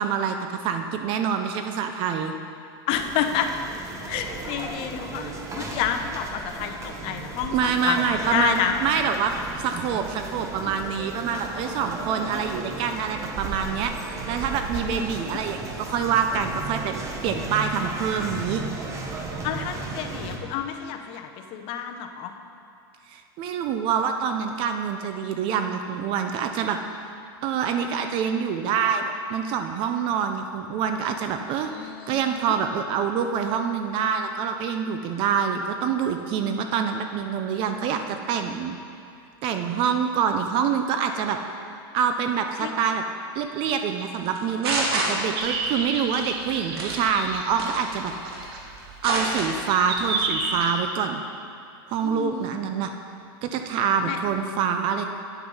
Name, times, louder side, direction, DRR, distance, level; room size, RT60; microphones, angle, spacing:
voice 1, 0.0-2.3 7.5-18.6 23.1-26.8 27.4-31.7 32.1-38.8 39.4-41.4 41.9-43.0 43.3-48.1 49.0-51.2 51.9-52.9 53.4-55.0, right 7 dB, 45° right, 6 dB, 0.6 m, -26 dB
voice 2, 2.9-3.5 4.1-8.7 11.3-11.9 14.9-15.4 19.4-22.3 31.5-32.5 42.6-42.7 52.0-52.6 54.0-54.2, left 9 dB, 50° left, 6 dB, 0.9 m, -30 dB
sound 1, 2.9-20.4, right 3 dB, 25° right, 1.1 m, -35 dB
sound 2, 44.3-45.6 45.9-46.2 46.8-47.1 47.6-48.5 48.8-49.5 49.9-50.1, right 2 dB, 90° right, 2.1 m, -27 dB
sound 3, 45.3-50.7, right 3 dB, 70° right, 1.5 m, -31 dB
9.3 x 7.8 x 5.5 m, 2.5 s
supercardioid pair, 135°, 13 cm